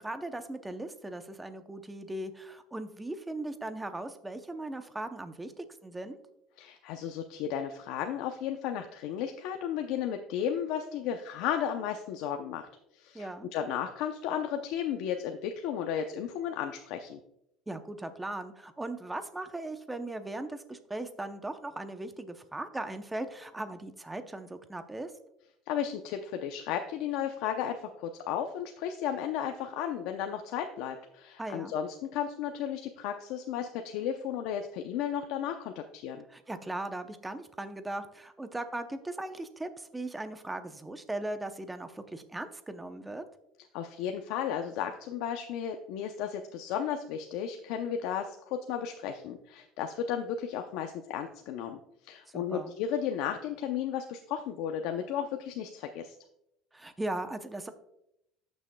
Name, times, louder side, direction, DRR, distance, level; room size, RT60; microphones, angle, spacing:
voice 1, 0.0-6.2 13.1-13.5 17.7-25.1 31.4-31.7 36.3-43.2 52.3-52.7 56.7-57.7, right 2 dB, 10° right, 9 dB, 0.6 m, -38 dB
voice 2, 6.6-12.7 12.9-17.2 25.7-36.2 43.7-56.2, left 9 dB, 75° left, 5 dB, 0.6 m, -34 dB
13.5 x 6.3 x 2.2 m, 0.80 s
cardioid pair, 145°, 0 cm